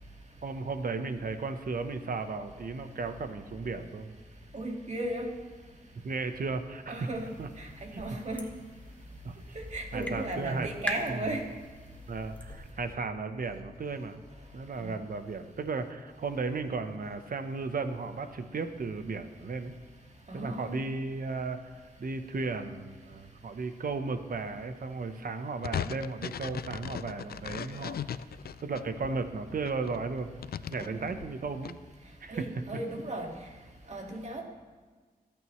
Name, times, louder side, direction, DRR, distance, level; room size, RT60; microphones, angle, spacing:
voice 1, 0.4-4.1 6.0-7.1 7.4-7.5 7.9-8.2 9.2-9.4 9.9-10.7 11.1-11.3 12.1-14.2 14.5-19.7 20.3-28.0 28.6-30.3 30.7-31.7 32.2-32.5, right 4 dB, 60° right, 8 dB, 1.0 m, -35 dB
voice 2, 4.5-5.3 6.9-7.3 7.6-8.5 9.6-11.5 14.8-14.9 20.3-20.8 30.8-31.0 32.3-33.3 33.9-34.4, right 1 dB, 45° right, 1 dB, 2.0 m, -35 dB
sound 1, 6.9-12.7, equal, 10° left, 1.2 m, -43 dB
sound 2, 25.6-29.1 29.6-31.7, left 9 dB, 75° left, 0.4 m, -37 dB
27.0 x 9.0 x 3.2 m, 1.5 s
wide cardioid pair, 110°, 16 cm